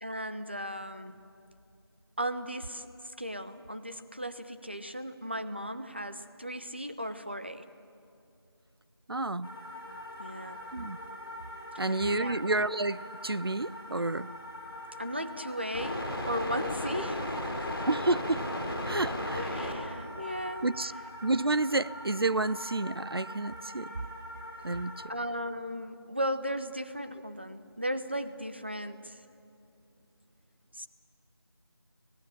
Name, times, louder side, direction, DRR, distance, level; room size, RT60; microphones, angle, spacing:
voice 1, 0.0-1.2 2.2-7.6 10.2-10.6 11.7-12.4 15.0-17.9 19.2-20.7 25.1-29.2 30.7-30.9, equal, 25° right, 0.6 m, -36 dB
voice 2, 9.1-9.5 10.7-11.0 11.8-14.3 17.9-18.4 18.9-19.5 20.6-20.9 21.2-23.9 24.6-25.0, right 2 dB, 65° right, 0.6 m, -30 dB
sound 1, 9.4-25.1, left 1 dB, 5° left, 1.2 m, -38 dB
27.0 x 18.0 x 7.4 m
figure-of-eight pair, 175°, 14 cm